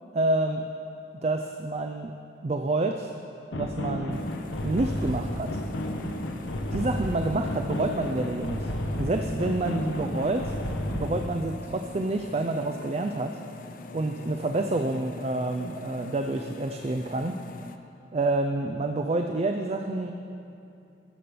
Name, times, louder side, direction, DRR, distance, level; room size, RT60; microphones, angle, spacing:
voice 1, 0.1-0.7 1.2-2.1 2.4-3.1 3.5-4.2 4.6-5.6 6.7-8.7 9.0-10.6 10.9-13.4 13.9-17.4 18.1-20.1, right 2 dB, 35° right, 5 dB, 0.4 m, -28 dB
sound 1, 3.5-11.3, left 1 dB, 80° left, 0.9 m, -32 dB
sound 2, 4.1-17.8, left 3 dB, 45° left, 0.5 m, -44 dB
13.0 x 5.9 x 6.9 m, 2.7 s
head